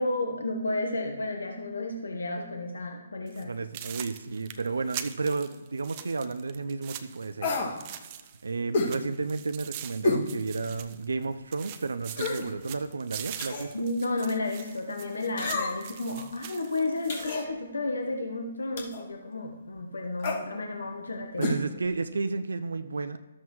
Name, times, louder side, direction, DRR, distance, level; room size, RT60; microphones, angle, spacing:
voice 1, 0.0-3.5 13.7-21.6, left 2 dB, 85° left, 3 dB, 1.0 m, -32 dB
sound 1, 3.3-3.4 3.7-8.5 8.8-11.3 11.5-17.4, right 10 dB, 35° right, 0.6 m, -43 dB
voice 2, 3.4-7.8 8.4-13.7 21.4-23.2, right 4 dB, 85° right, 10 dB, 0.5 m, -32 dB
sound 2, 7.4-7.8 8.7-9.0 10.0-10.3 10.8-10.9 12.1-12.5 13.4-13.7 15.4-15.9 17.1-17.5 18.8-19.0 20.2-20.4 21.4-21.6 21.9-22.0, left 2 dB, 50° left, 2.1 m, -29 dB
12.5 x 7.2 x 3.1 m, 1.1 s
hypercardioid pair, 145°, 0 cm